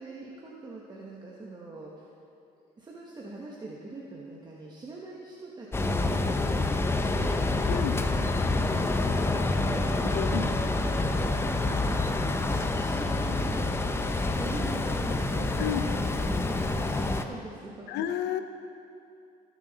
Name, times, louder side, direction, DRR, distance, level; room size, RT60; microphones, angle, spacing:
voice 1, 0.0-2.1 2.8-6.8 7.1-10.5 10.8-17.9, right 2 dB, 25° right, -4 dB, 1.1 m, -43 dB
sound 1, 5.7-17.2, left 2 dB, 15° left, 0.5 m, -27 dB
voice 2, 10.1-10.5 15.6-15.8 17.9-18.4, left 11 dB, 80° left, 8 dB, 0.7 m, -30 dB
16.5 x 6.3 x 4.0 m, 2.5 s
cardioid pair, 110°, 17 cm